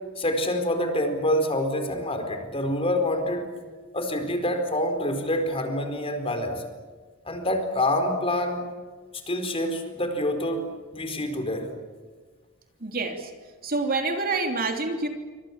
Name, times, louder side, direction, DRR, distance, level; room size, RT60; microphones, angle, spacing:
voice 1, 0.2-3.5 3.9-6.6 7.2-8.6 9.3-11.7, left 1 dB, 25° left, 6 dB, 4.6 m, -26 dB
voice 2, 12.8-13.3 13.6-15.1, right 3 dB, 45° right, 4 dB, 3.2 m, -27 dB
28.5 x 25.0 x 7.4 m, 1.4 s
head